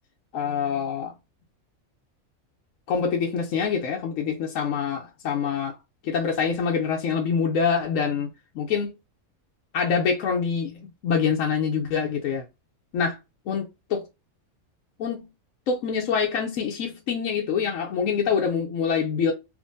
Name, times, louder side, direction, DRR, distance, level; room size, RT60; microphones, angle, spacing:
voice 1, 0.3-1.1 2.9-5.8 6.0-8.3 8.5-8.9 9.7-12.4 12.9-13.2 13.5-14.1 15.0-15.3 15.7-19.3, left 6 dB, 75° left, 1.0 m, -25 dB
3.6 x 3.0 x 2.5 m
omnidirectional pair, 1.4 m